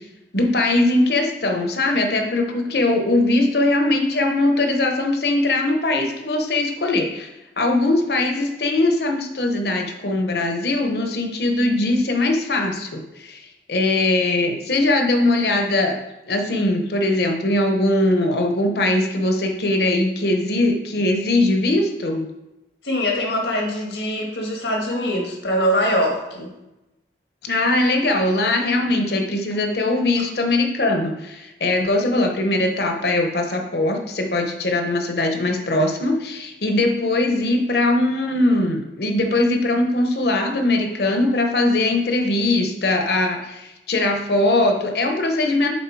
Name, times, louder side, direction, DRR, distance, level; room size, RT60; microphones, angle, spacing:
voice 1, 0.3-7.3 7.6-13.4 13.7-16.0 16.3-22.3 27.4-45.8, left 2 dB, 65° left, 4 dB, 1.0 m, -21 dB
voice 2, 22.8-26.5, equal, 85° left, 0 dB, 1.7 m, -23 dB
7.3 x 4.0 x 4.8 m, 0.95 s
head